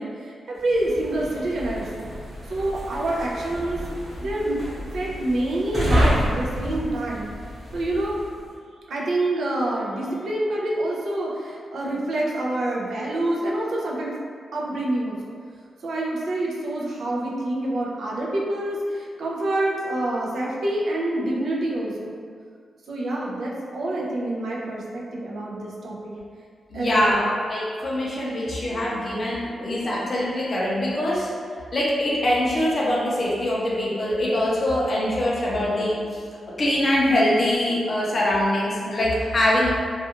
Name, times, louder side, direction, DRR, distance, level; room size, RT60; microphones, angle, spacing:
voice 1, 0.0-2.1 2.5-3.8 4.2-7.3 7.7-8.1 8.9-14.2 14.5-15.3 15.8-22.2 22.9-26.2 26.7-27.3, right 1 dB, 55° right, -4 dB, 0.4 m, -27 dB
sound 1, 0.6-8.4, equal, 15° right, 1.0 m, -29 dB
voice 2, 26.7-31.3 31.7-36.2 36.6-39.7, left 1 dB, 35° left, -6 dB, 0.5 m, -23 dB
2.3 x 2.3 x 2.8 m, 2.1 s
wide cardioid pair, 175°, 0 cm